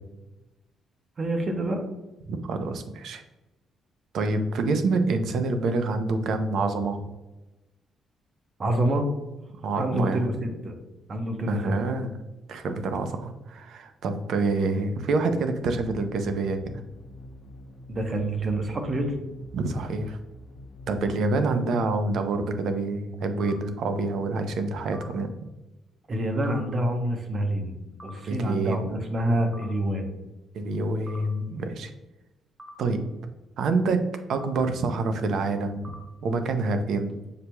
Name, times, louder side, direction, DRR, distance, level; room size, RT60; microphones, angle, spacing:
voice 1, 1.2-1.8 8.6-9.1 9.7-10.7 11.1-11.7 17.9-19.1 26.1-30.1, right 1 dB, 40° right, 5 dB, 0.8 m, -27 dB
voice 2, 2.3-3.2 4.1-7.0 9.6-10.3 11.5-12.2 12.5-16.8 19.5-20.2 20.9-25.3 28.3-28.9 30.5-31.9 32.8-33.0 33.6-34.0 34.3-35.8 36.2-37.2, right 3 dB, 70° right, 7 dB, 0.5 m, -27 dB
sound 1, 15.5-21.1, left 1 dB, 50° left, 0.8 m, -46 dB
sound 2, 23.4-23.5 24.9-25.1 26.5-26.6 28.0-28.1 29.5-29.7 31.1-31.2 32.6-32.7 34.3-34.5 35.8-36.0, equal, 5° right, 0.9 m, -43 dB
6.6 x 3.0 x 2.2 m, 1.0 s
cardioid pair, 80°, 0 cm